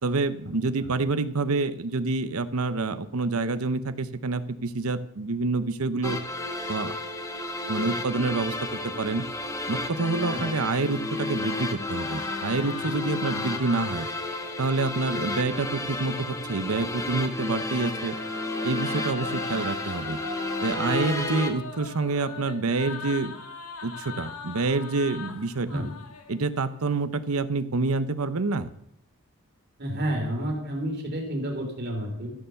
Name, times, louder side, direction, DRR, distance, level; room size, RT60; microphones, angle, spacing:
voice 1, 0.0-6.2 6.7-6.9 7.7-9.2 9.7-14.1 14.6-18.2 18.6-20.2 20.6-23.3 23.8-25.8 26.3-28.7, right 3 dB, 75° right, 12 dB, 0.8 m, -27 dB
sound 1, 6.0-21.5, left 2 dB, 15° left, 1.3 m, -32 dB
sound 2, 11.4-15.4 17.2-26.7, left 3 dB, 85° left, 1.7 m, -40 dB
voice 2, 29.8-32.3, right 1 dB, 50° right, 1 dB, 3.4 m, -30 dB
13.5 x 7.0 x 6.9 m, 0.75 s
head